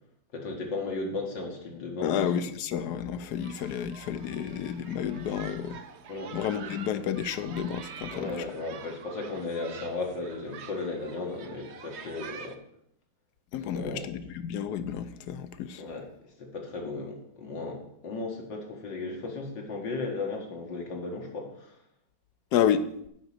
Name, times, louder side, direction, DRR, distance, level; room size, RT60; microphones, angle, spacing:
voice 1, 0.3-2.4 6.1-6.4 8.1-12.6 13.7-14.1 15.8-16.1 16.4-21.8, left 3 dB, 85° left, 1 dB, 2.4 m, -35 dB
voice 2, 2.0-5.8 6.3-8.4 13.5-15.8 22.5-22.8, left 8 dB, 70° left, 12 dB, 1.2 m, -30 dB
sound 1, 3.4-12.6, right 7 dB, 65° right, 0.6 m, -46 dB
7.9 x 5.3 x 7.5 m, 0.72 s
omnidirectional pair, 1.9 m